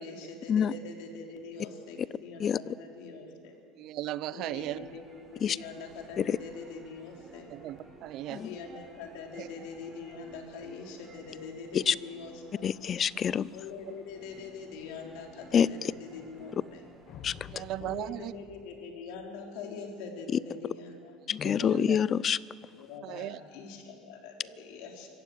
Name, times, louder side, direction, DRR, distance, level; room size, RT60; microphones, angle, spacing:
voice 1, 0.0-3.5 4.3-7.5 8.3-12.7 13.5-16.8 17.8-21.2 22.8-25.1, left 4 dB, 75° left, 1 dB, 3.7 m, -43 dB
voice 2, 3.8-4.9 7.5-8.5 9.4-9.5 17.5-18.3 21.4-22.0 23.0-23.4, right 14 dB, 60° right, 18 dB, 0.6 m, -37 dB
sound 1, 4.5-18.2, right 1 dB, 25° right, 5.6 m, -55 dB
voice 3, 12.6-13.5 15.5-15.7 17.2-17.3 21.3-22.4, left 8 dB, 40° left, 21 dB, 0.5 m, -26 dB
sound 2, 17.1-19.6, left 9 dB, 55° left, 1.0 m, -49 dB
24.5 x 15.5 x 7.7 m, 2.4 s
supercardioid pair, 100°, 0 cm